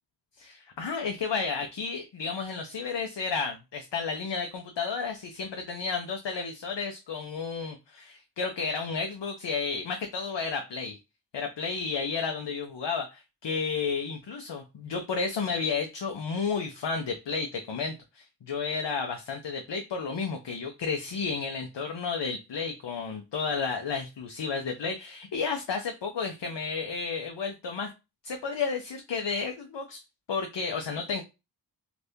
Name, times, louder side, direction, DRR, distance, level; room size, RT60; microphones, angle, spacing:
voice 1, 0.4-11.0 11.3-27.9 28.2-30.0 30.3-31.2, left 5 dB, 75° left, 4 dB, 0.7 m, -32 dB
2.7 x 2.5 x 3.4 m, 0.25 s
wide cardioid pair, 90°, 43 cm